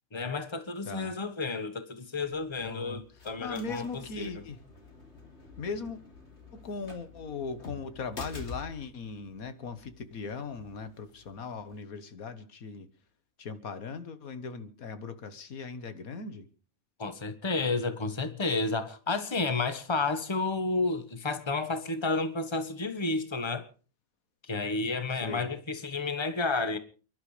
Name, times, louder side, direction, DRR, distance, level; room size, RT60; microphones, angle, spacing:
voice 1, 0.1-4.3 17.0-23.7 24.4-26.8, left 3 dB, 20° left, 1.4 m, -31 dB
sound 1, 2.2-11.8, left 3 dB, 50° left, 3.4 m, -49 dB
voice 2, 2.6-3.0 3.4-4.6 5.6-6.0 6.5-12.9 13.4-16.5 25.1-25.5, left 4 dB, 85° left, 1.8 m, -39 dB
29.0 x 11.5 x 3.3 m
omnidirectional pair, 1.5 m